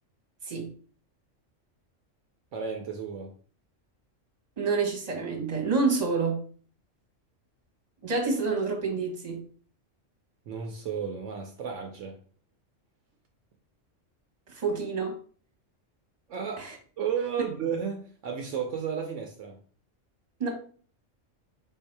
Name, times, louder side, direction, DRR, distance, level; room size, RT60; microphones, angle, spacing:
voice 1, 2.5-3.3 10.5-12.2 16.3-19.6, right 7 dB, 70° right, 0.9 m, -33 dB
voice 2, 4.6-6.4 8.0-9.4 14.5-15.2 16.6-16.7 20.4-20.5, right 4 dB, 35° right, 1.2 m, -28 dB
3.9 x 2.7 x 4.5 m
omnidirectional pair, 1.3 m